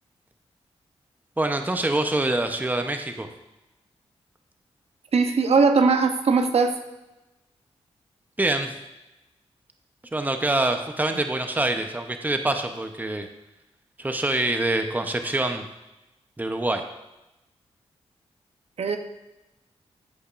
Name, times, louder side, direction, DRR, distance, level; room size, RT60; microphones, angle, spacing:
voice 1, 1.4-3.3 8.4-8.7 10.1-13.3 14.0-15.6 16.4-16.8, right 2 dB, 15° right, 6 dB, 0.8 m, -25 dB
voice 2, 5.1-6.8 18.8-19.0, right 4 dB, 65° right, 7 dB, 0.8 m, -20 dB
15.0 x 5.2 x 2.6 m, 0.98 s
cardioid pair, 50°, 11 cm